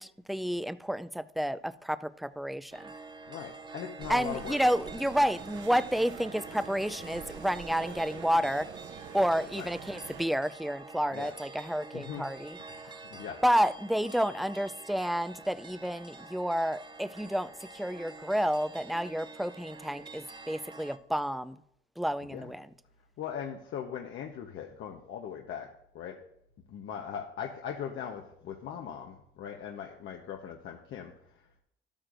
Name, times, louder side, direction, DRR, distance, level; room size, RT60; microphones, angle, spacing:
voice 1, 0.0-2.9 4.1-8.7 9.1-13.0 13.4-21.6 22.0-22.7, equal, ahead, 0.4 m, -30 dB
sound 1, 2.7-21.0, right 3 dB, 25° right, 0.8 m, -47 dB
voice 2, 3.3-4.6 9.5-9.7 11.1-11.3 11.9-12.3 12.7-12.8 13.1-13.4 22.3-22.5 23.2-25.7 25.9-26.2 26.7-31.3, left 8 dB, 80° left, 1.0 m, -40 dB
sound 2, 4.0-10.3, right 8 dB, 70° right, 0.6 m, -46 dB
12.0 x 8.8 x 2.6 m
cardioid pair, 90°, 20 cm